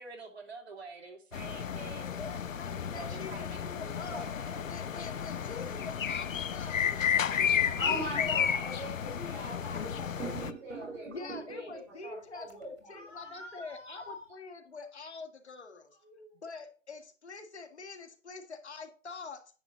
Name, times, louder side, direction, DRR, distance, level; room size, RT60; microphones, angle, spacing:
voice 1, 0.0-2.1 2.7-4.7, right 4 dB, 55° right, 3 dB, 2.6 m, -47 dB
sound 1, 1.3-10.5, left 8 dB, 85° left, 0.8 m, -32 dB
voice 2, 2.2-4.3 4.6-8.5 11.1-15.9 16.4-19.4, left 4 dB, 60° left, 6 dB, 2.0 m, -45 dB
sound 2, 6.8-9.8 10.2-11.9 12.5-12.6, right 6 dB, 80° right, 2.5 m, -47 dB
voice 3, 7.6-11.7 12.0-14.2 16.0-16.3, left 1 dB, 5° right, -6 dB, 3.5 m, -41 dB
9.7 x 7.1 x 3.9 m, 0.36 s
hypercardioid pair, 170°, 38 cm